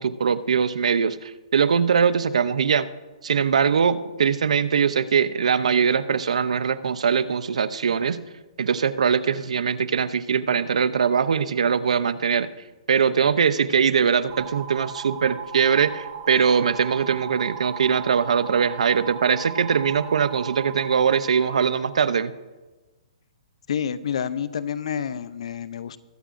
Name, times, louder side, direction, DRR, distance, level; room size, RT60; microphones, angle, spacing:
voice 1, 0.0-2.9 3.2-8.2 8.6-12.5 12.9-22.3, right 6 dB, 80° right, 15 dB, 0.6 m, -22 dB
sound 1, 14.3-21.6, right 8 dB, 40° right, 2.0 m, -37 dB
voice 2, 23.7-26.0, left 8 dB, 65° left, 15 dB, 0.6 m, -28 dB
22.0 x 8.2 x 2.6 m, 1.2 s
hypercardioid pair, 150°, 3 cm